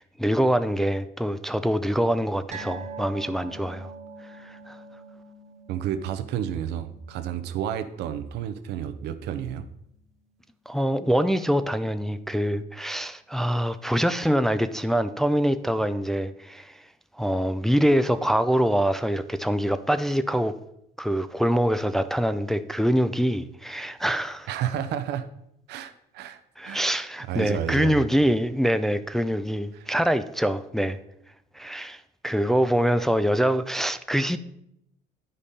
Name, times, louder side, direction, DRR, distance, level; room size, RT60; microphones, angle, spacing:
voice 1, 0.0-3.9 4.2-4.8 10.7-16.9 17.1-20.6 21.0-24.5 26.6-31.0 31.5-34.4, equal, ahead, 0.4 m, -24 dB
sound 1, 2.5-9.3 9.6-9.8 10.2-10.3, right 4 dB, 40° right, 1.3 m, -44 dB
voice 2, 5.7-9.7 24.5-25.3 25.7-26.4 26.6-26.9 27.3-28.0 29.7-29.8, right 10 dB, 80° right, 0.7 m, -31 dB
10.0 x 5.2 x 4.1 m
cardioid pair, 110°, 17 cm